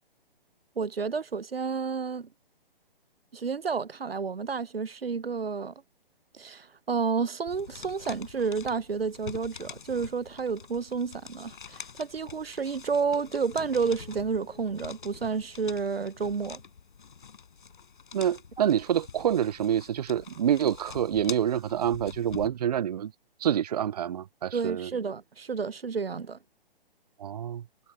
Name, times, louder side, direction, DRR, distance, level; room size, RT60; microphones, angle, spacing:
voice 1, 0.8-2.3 3.3-5.7 6.3-16.6 24.5-26.4, right 5 dB, 80° right, 0.7 m, -30 dB
sound 1, 7.5-22.5, left 6 dB, 60° left, 5.0 m, -46 dB
sound 2, 13.0-16.7 17.1-17.2, left 3 dB, 80° left, 7.1 m, -59 dB
voice 2, 18.1-23.1 23.4-24.9 27.2-27.6, right 10 dB, 45° right, 0.7 m, -27 dB
figure-of-eight pair, 130°, 29 cm